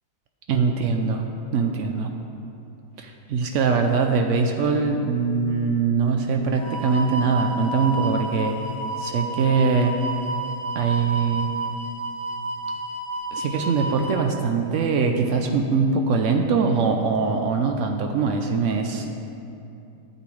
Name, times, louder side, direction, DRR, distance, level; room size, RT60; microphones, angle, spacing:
voice 1, 0.5-1.2 1.5-2.1 3.0-8.5 9.0-10.0 10.7-11.5 13.3-19.1, right 5 dB, 80° right, 4 dB, 0.6 m, -22 dB
sound 1, 6.6-14.2, right 3 dB, 15° right, 0.6 m, -31 dB
11.5 x 7.7 x 3.2 m, 2.7 s
omnidirectional pair, 1.9 m